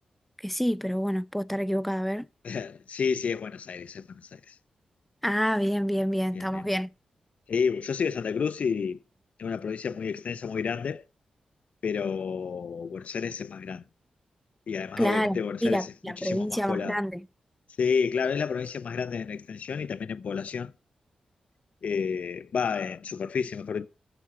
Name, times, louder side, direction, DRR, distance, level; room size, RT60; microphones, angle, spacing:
voice 1, 0.4-2.3 5.2-6.9 15.0-17.2, equal, 5° left, 0.4 m, -27 dB
voice 2, 2.4-4.5 6.3-6.6 7.5-9.0 9.4-11.0 11.8-13.8 14.7-17.0 17.8-20.7 21.8-23.9, left 6 dB, 65° left, 0.6 m, -30 dB
12.0 x 7.1 x 4.3 m
cardioid pair, 70°, 2 cm